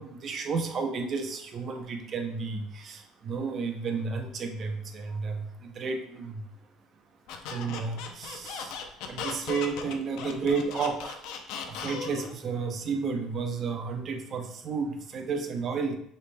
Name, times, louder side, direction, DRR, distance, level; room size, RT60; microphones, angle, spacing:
voice 1, 0.0-6.5 7.4-11.3 11.7-16.0, right 4 dB, 40° right, 4 dB, 0.6 m, -32 dB
Squeak, 7.3-12.3, left 6 dB, 70° left, 0.5 m, -37 dB
6.4 x 3.3 x 2.3 m, 0.74 s
cardioid pair, 130°, 0 cm